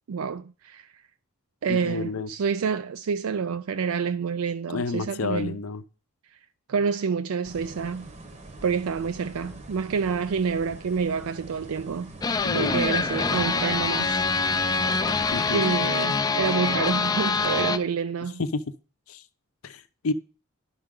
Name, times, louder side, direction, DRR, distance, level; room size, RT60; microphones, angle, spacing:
voice 1, 0.1-0.9 1.6-5.6 6.7-8.1 8.6-12.1 12.5-14.2 15.5-18.4, right 6 dB, 75° right, 0.4 m, -28 dB
voice 2, 1.7-2.3 4.7-5.8 12.4-12.8 15.3-15.6 18.4-18.6 19.1-19.2 19.6-20.1, left 3 dB, 70° left, 0.6 m, -30 dB
sound 1, 7.4-15.5, right 2 dB, 30° right, 0.9 m, -44 dB
sound 2, 12.2-17.8, left 4 dB, 15° left, 0.4 m, -25 dB
11.5 x 5.7 x 3.7 m
head